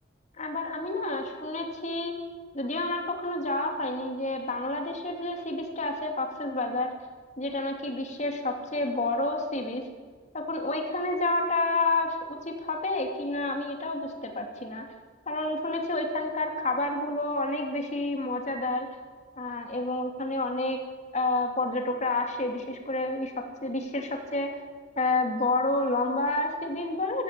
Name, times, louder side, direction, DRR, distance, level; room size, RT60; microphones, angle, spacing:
voice 1, 0.4-2.1 2.5-6.9 7.4-9.8 10.3-14.9 15.3-18.9 19.4-20.8 21.1-23.3 23.6-24.5 25.0-27.2, left 2 dB, 40° left, 3 dB, 2.9 m, -29 dB
20.0 x 16.0 x 8.4 m, 1.5 s
head